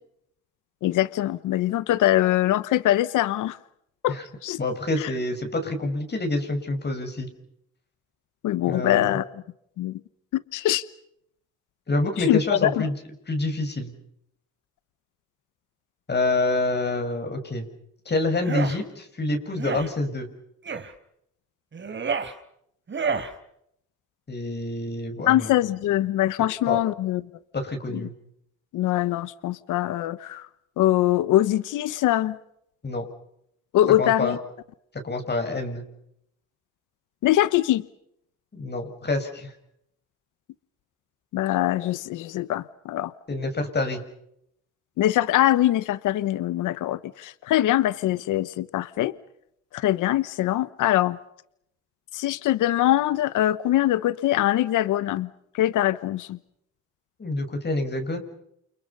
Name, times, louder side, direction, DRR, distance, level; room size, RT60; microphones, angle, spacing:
voice 1, 0.8-3.6 4.0-4.6 5.0-5.1 8.4-9.2 9.8-10.0 10.3-10.8 12.2-12.7 25.3-27.2 27.9-28.0 28.7-30.5 30.8-32.4 33.7-34.4 37.2-37.8 41.3-43.1 45.0-49.1 49.7-51.2 52.1-56.4, left 14 dB, 85° left, 15 dB, 1.1 m, -23 dB
voice 2, 4.6-7.3 8.7-9.2 11.9-12.9 13.3-13.9 16.1-17.7 18.0-20.3 24.3-25.5 26.6-26.8 27.5-28.1 32.8-33.0 34.0-34.3 34.9-35.8 38.5-39.5 43.3-44.0 57.2-58.2, left 2 dB, 35° left, 5 dB, 6.5 m, -27 dB
sound 1, 18.3-18.8 19.5-19.9 20.6-20.9 21.7-22.3 22.9-23.3, right 5 dB, 40° right, 3.6 m, -29 dB
29.5 x 29.0 x 5.6 m, 0.75 s
cardioid pair, 90°, 30 cm